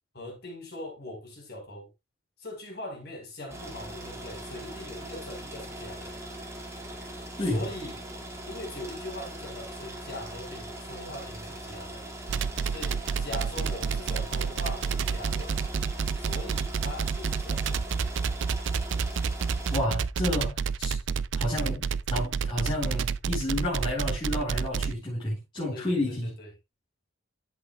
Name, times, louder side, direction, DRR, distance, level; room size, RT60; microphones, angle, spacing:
voice 1, 0.1-1.9 2.4-6.2 7.4-8.0 8.5-12.1 12.7-15.6 16.2-17.8 25.7-26.5, left 1 dB, 55° left, 4.5 m, -41 dB
sound 1, 3.5-19.8, right 1 dB, 15° right, 2.3 m, -41 dB
voice 2, 7.4-7.7 19.7-21.0 21.3-26.3, left 1 dB, 25° left, 4.3 m, -30 dB
sound 2, 12.3-24.9, right 5 dB, 65° right, 0.5 m, -29 dB
11.0 x 8.0 x 2.4 m
head